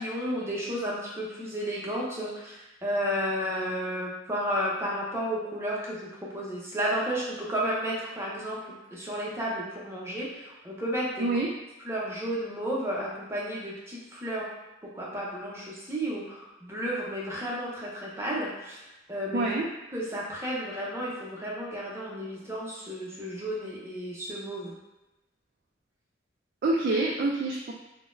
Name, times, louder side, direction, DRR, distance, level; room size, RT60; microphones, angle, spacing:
voice 1, 0.0-6.1 6.3-11.3 11.9-14.4 14.9-18.8 19.1-19.5 19.9-24.7, equal, 15° right, -5 dB, 0.6 m, -32 dB
voice 2, 19.3-19.7 26.6-27.7, right 2 dB, 50° right, -1 dB, 0.3 m, -26 dB
3.8 x 2.1 x 2.5 m, 1.0 s
head